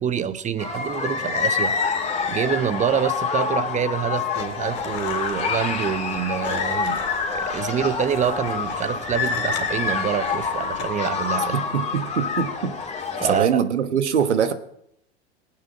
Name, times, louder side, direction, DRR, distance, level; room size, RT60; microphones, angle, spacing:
voice 1, 0.0-7.1 7.3-11.6 13.2-13.5, right 8 dB, 20° right, 0.9 m, -26 dB
sound 1, 0.6-13.4, left 5 dB, 20° left, 2.8 m, -27 dB
sound 2, 4.3-10.8, left 7 dB, 35° left, 2.9 m, -39 dB
voice 2, 11.5-12.8 13.2-14.5, right 7 dB, 85° right, 1.3 m, -23 dB
19.5 x 8.7 x 4.8 m
hypercardioid pair, 95°, 34 cm